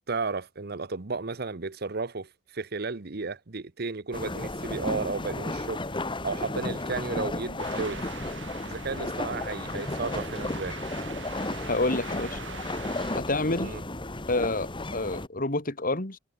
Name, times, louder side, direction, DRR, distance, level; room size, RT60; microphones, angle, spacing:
voice 1, 0.1-5.8 6.2-8.0 8.7-10.8 13.6-13.8, right 3 dB, 60° right, 1.0 m, -33 dB
sound 1, 4.1-15.3, left 2 dB, 25° left, 2.0 m, -34 dB
sound 2, 7.6-13.2, right 6 dB, 75° right, 3.9 m, -43 dB
voice 2, 11.7-12.4 13.2-13.7 14.3-16.2, left 2 dB, 50° left, 2.5 m, -28 dB
head